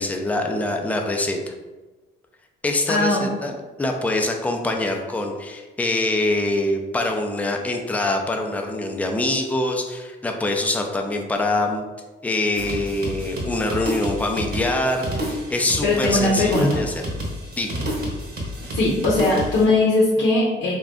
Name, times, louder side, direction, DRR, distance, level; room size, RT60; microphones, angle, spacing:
voice 1, 0.0-1.5 2.6-3.5 3.8-11.8 12.2-17.0 17.6-17.7, left 2 dB, 5° left, 2 dB, 0.4 m, -24 dB
voice 2, 2.9-3.2 15.8-16.8 18.7-20.7, left 2 dB, 75° left, -4 dB, 0.7 m, -19 dB
sound 1, 12.5-19.7, equal, 55° right, 0.8 m, -30 dB
2.4 x 2.2 x 3.6 m, 1.2 s
cardioid pair, 90°, 20 cm